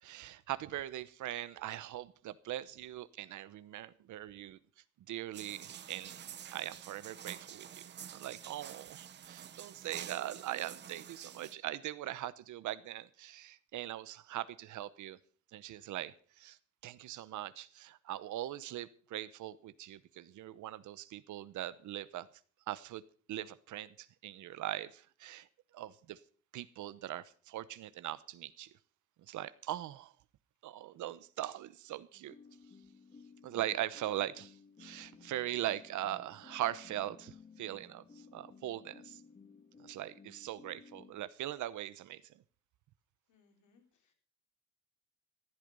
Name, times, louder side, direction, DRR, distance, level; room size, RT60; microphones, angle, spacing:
voice 1, 0.0-4.6 5.1-15.2 15.5-16.6 16.8-22.3 22.7-23.0 23.3-25.5 25.7-26.2 26.5-28.7 29.3-30.1 30.6-32.3 33.4-39.2 39.8-42.3, right 13 dB, 75° right, 16 dB, 1.0 m, -41 dB
sound 1, 5.3-11.6, right 9 dB, 35° right, 0.7 m, -49 dB
sound 2, 32.1-41.1, left 5 dB, 25° left, 2.4 m, -57 dB
voice 2, 43.3-44.1, left 5 dB, 80° left, 3 dB, 4.0 m, -69 dB
14.5 x 12.0 x 5.4 m, 0.44 s
cardioid pair, 180°, 30 cm